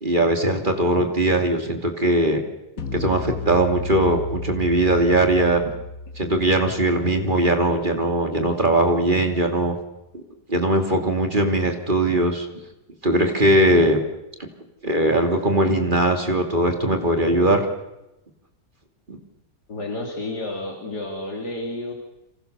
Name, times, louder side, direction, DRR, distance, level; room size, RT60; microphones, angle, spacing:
voice 1, 0.0-2.4 2.9-5.7 6.2-9.8 10.1-10.2 10.5-12.5 13.0-14.0 14.4-14.5 14.8-17.7 19.1-19.2, right 1 dB, 30° right, 4 dB, 3.0 m, -20 dB
sound 1, 2.8-8.1, left 2 dB, 55° left, 2.2 m, -34 dB
voice 2, 19.7-21.9, left 2 dB, 70° left, 0 dB, 3.6 m, -31 dB
28.5 x 26.0 x 6.9 m, 0.94 s
omnidirectional pair, 1.8 m